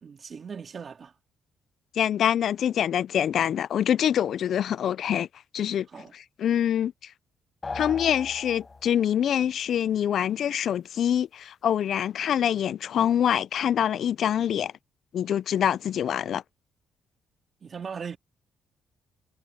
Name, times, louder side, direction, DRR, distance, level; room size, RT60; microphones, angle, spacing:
voice 1, 0.0-1.1 5.9-6.1 17.6-18.2, right 6 dB, 45° right, 2.2 m, -39 dB
voice 2, 2.0-5.3 5.5-5.9 6.4-6.9 7.7-14.7 15.1-16.4, left 9 dB, 65° left, 0.4 m, -25 dB
sound 1, 7.6-9.1, left 4 dB, 30° left, 0.7 m, -37 dB
cardioid pair, 90°, 0 cm